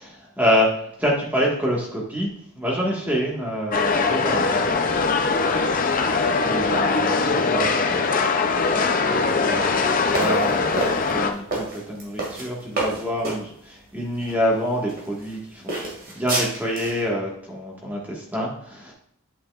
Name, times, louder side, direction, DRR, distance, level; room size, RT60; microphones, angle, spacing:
voice 1, 0.0-2.3 2.6-4.7 6.4-18.9, equal, 10° right, -3 dB, 1.6 m, -27 dB
sound 1, 3.7-11.3, left 4 dB, 40° left, 0.5 m, -21 dB
sound 2, 10.1-13.4 14.2-14.3 14.9-15.3 15.7-17.0, right 2 dB, 40° right, 2.2 m, -28 dB
8.7 x 7.5 x 2.4 m, 0.69 s
head